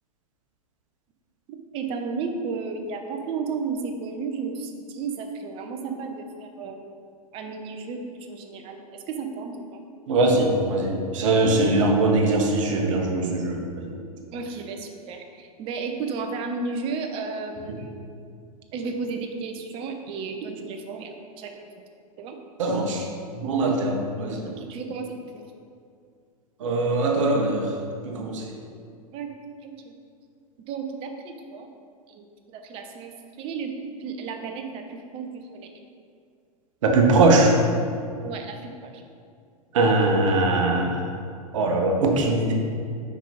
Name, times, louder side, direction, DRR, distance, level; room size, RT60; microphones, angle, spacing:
voice 1, 1.5-6.9 7.3-9.8 14.3-18.1 18.7-21.7 22.2-22.4 23.4-23.6 24.4-25.5 29.1-29.3 29.6-29.9 30.7-31.7 32.1-32.2 32.5-33.7 34.0-35.7 38.2-38.9, right 4 dB, 30° right, 4 dB, 0.6 m, -33 dB
voice 2, 10.1-13.9 22.6-23.1 23.4-24.5 26.6-27.7 28.0-28.4 36.8-37.6 39.7-41.0 41.5-42.5, right 2 dB, 55° right, 1 dB, 1.0 m, -21 dB
6.2 x 5.3 x 4.0 m, 2.3 s
figure-of-eight pair, 100°, 20 cm